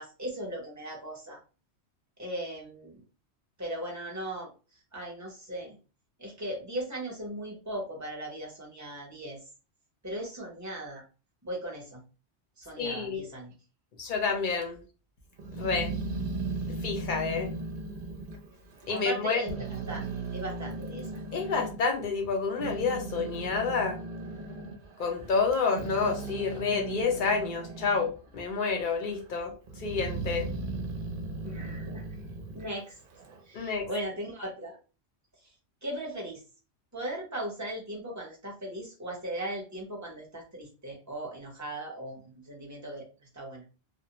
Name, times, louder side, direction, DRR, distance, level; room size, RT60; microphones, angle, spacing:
voice 1, 0.0-1.4 2.2-3.0 3.6-4.5 4.9-5.8 6.2-9.4 10.0-11.0 11.4-12.0 12.6-13.5 18.9-21.2 31.4-32.0 32.5-32.9 33.5-34.8 35.8-36.4 36.9-43.0 43.3-43.6, right 1 dB, 20° right, -1 dB, 0.7 m, -38 dB
voice 2, 12.8-13.2 14.0-14.8 15.5-15.9 16.7-17.5 18.9-19.4 21.3-24.0 25.0-29.5 29.8-30.5 33.5-33.9, left 5 dB, 55° left, 3 dB, 0.7 m, -29 dB
Growling, 15.4-19.1 19.4-21.8 22.3-28.2 28.5-29.2 29.7-33.4, right 3 dB, 60° right, 0.7 m, -37 dB
2.5 x 2.0 x 2.8 m, 0.33 s
omnidirectional pair, 1.1 m